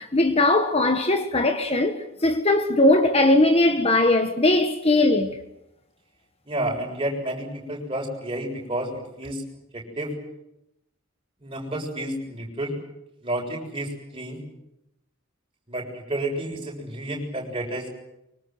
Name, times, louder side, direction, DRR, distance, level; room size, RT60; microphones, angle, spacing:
voice 1, 0.0-5.4, left 2 dB, 30° left, 1.4 m, -20 dB
voice 2, 6.5-9.4 9.7-10.1 11.4-12.8 13.2-14.4 15.7-17.9, right 1 dB, 25° right, 7.1 m, -30 dB
25.0 x 24.5 x 7.8 m
head